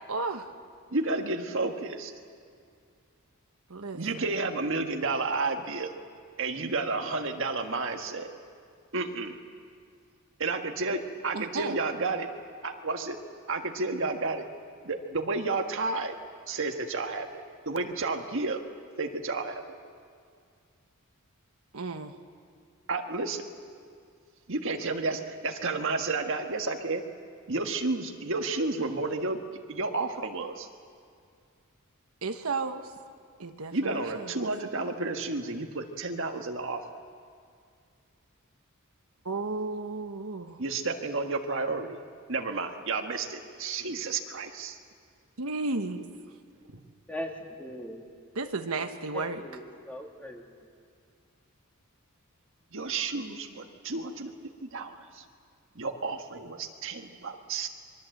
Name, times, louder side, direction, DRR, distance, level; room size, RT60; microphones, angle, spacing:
voice 1, 0.1-0.5 3.7-4.0 11.3-11.8 21.7-22.1 32.2-32.9 33.4-34.2 39.3-40.6 45.4-46.1 48.4-49.4, right 3 dB, 75° right, 6 dB, 1.2 m, -33 dB
voice 2, 0.9-2.1 3.9-5.9 6.4-8.3 8.9-9.4 10.4-12.3 12.6-13.2 13.5-14.5 14.8-16.1 16.5-18.6 19.0-19.8 22.9-23.5 24.5-27.0 27.5-29.4 29.7-30.7 33.7-36.8 40.6-42.0 42.3-44.8 46.7-46.8 52.7-54.3 54.6-55.2 55.7-57.7, right 3 dB, 60° right, 5 dB, 1.6 m, -31 dB
voice 3, 47.1-48.0 49.1-50.5, equal, 5° left, 1 dB, 2.5 m, -40 dB
26.5 x 23.0 x 7.8 m, 2.2 s
head